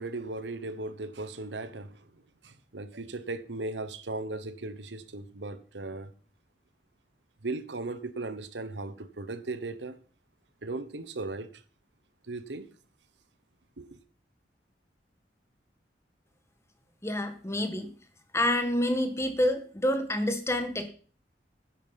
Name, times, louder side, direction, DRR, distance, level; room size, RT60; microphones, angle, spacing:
voice 1, 0.0-6.1 7.4-10.0 10.6-11.6 12.3-12.7 13.8-14.0, right 2 dB, 80° right, 1.1 m, -37 dB
voice 2, 17.0-17.9 18.3-20.9, left 1 dB, 15° left, 1.7 m, -28 dB
10.5 x 9.5 x 5.8 m
head